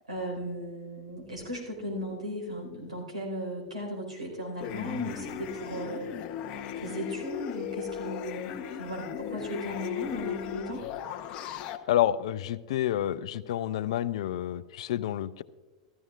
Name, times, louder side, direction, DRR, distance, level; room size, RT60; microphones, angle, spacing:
voice 1, 0.1-6.1 6.8-10.8, equal, 85° right, -1 dB, 4.5 m, -36 dB
sound 1, 4.6-11.8, left 10 dB, 40° left, 0.9 m, -37 dB
voice 2, 11.9-15.4, left 12 dB, 65° left, 16 dB, 0.4 m, -29 dB
15.0 x 14.0 x 2.5 m, 1.3 s
figure-of-eight pair, 95°, 3 cm